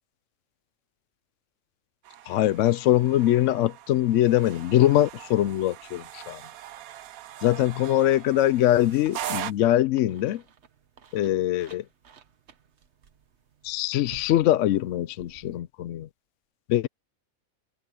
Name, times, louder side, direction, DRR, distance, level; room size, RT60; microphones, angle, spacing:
sound 1, 2.0-9.5, right 12 dB, 90° right, 1.1 m, -41 dB
voice 1, 2.3-6.4 7.4-10.4 11.1-11.8 13.6-16.1 16.7-16.9, left 13 dB, 70° left, 0.8 m, -22 dB
sound 2, 4.6-15.6, right 7 dB, 55° right, 1.2 m, -50 dB
omnidirectional pair, 1.4 m